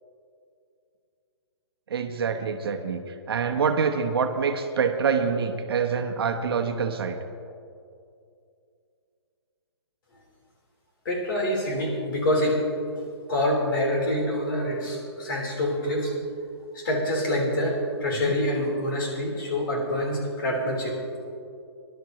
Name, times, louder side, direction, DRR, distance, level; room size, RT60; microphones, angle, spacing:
voice 1, 1.9-7.2 18.1-18.3, right 6 dB, 60° right, 5 dB, 1.1 m, -26 dB
voice 2, 11.0-12.6 13.0-13.1 13.3-16.1 16.7-21.0, left 1 dB, 50° left, -2 dB, 4.1 m, -26 dB
22.0 x 11.5 x 3.1 m, 2.4 s
hypercardioid pair, 170°, 14 cm